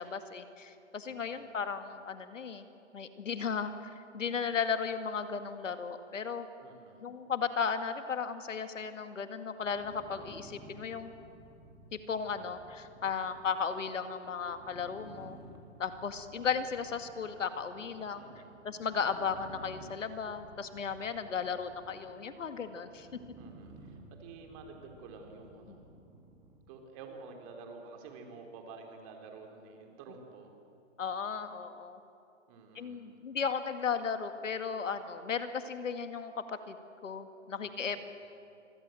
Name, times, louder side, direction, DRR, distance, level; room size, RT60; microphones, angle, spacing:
voice 1, 0.0-2.7 2.9-6.5 7.0-11.1 12.1-15.4 15.8-18.2 18.6-23.1 31.0-32.0 32.8-36.8 37.0-38.0, left 6 dB, 80° left, 9 dB, 2.1 m, -35 dB
voice 2, 1.1-1.5 6.6-7.1 18.1-18.5 23.4-25.8 26.7-30.5 32.5-33.0 37.6-38.0, right 4 dB, 25° right, 3 dB, 3.4 m, -50 dB
sound 1, 9.6-26.8, right 3 dB, 10° right, 2.1 m, -55 dB
27.5 x 23.0 x 7.8 m, 2.7 s
hypercardioid pair, 155°, 37 cm